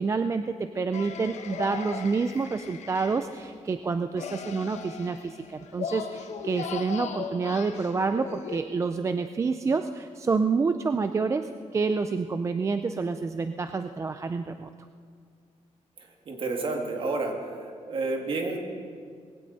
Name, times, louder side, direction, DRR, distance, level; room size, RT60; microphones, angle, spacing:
voice 1, 0.0-14.7, right 4 dB, 25° right, 9 dB, 0.4 m, -28 dB
sound 1, 0.9-3.4 4.2-8.6, left 6 dB, 70° left, 1.0 m, -38 dB
voice 2, 16.0-17.3 17.9-18.6, right 3 dB, 45° right, 2 dB, 2.0 m, -30 dB
20.0 x 16.0 x 4.0 m, 2.1 s
wide cardioid pair, 165°, 12 cm